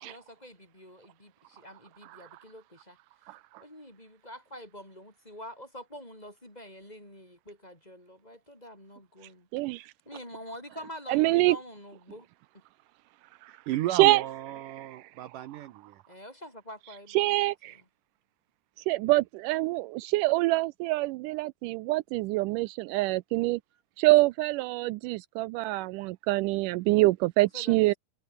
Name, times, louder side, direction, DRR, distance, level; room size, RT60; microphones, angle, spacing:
voice 1, 0.0-3.0 3.6-9.5 10.1-12.3 16.1-17.8 27.5-27.8, equal, 10° left, 6.9 m, -46 dB
voice 2, 2.1-2.4 3.3-3.6 9.5-9.9 11.1-11.6 13.9-14.2 14.8-15.1 17.1-17.8 18.9-23.6 24.0-27.9, right 20 dB, 90° right, 1.8 m, -25 dB
voice 3, 13.5-16.0, right 13 dB, 70° right, 2.4 m, -34 dB
omnidirectional pair, 4.3 m